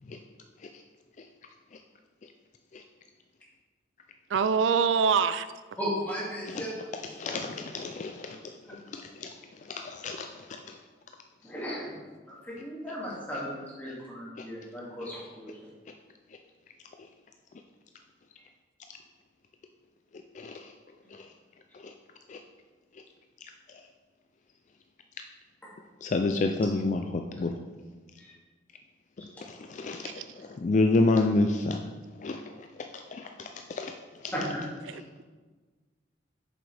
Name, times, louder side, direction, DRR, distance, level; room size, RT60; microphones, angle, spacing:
voice 1, 4.3-5.5 30.0-30.2 34.9-35.2, right 6 dB, 80° right, 13 dB, 0.3 m, -25 dB
voice 2, 5.8-6.7 11.4-11.8 12.5-15.5 28.2-28.3 34.3-34.6, equal, 10° left, -7 dB, 2.2 m, -35 dB
voice 3, 7.1-9.3 9.6-10.8 14.4-14.5 20.3-20.7 21.1-21.3 21.7-21.9 22.3-22.4 22.9-23.0 23.7-23.8 26.0-27.6 29.2-31.9 32.2-33.9 34.2-34.3 34.9-35.0, left 2 dB, 40° left, 5 dB, 0.4 m, -30 dB
7.8 x 7.2 x 3.4 m, 1.4 s
head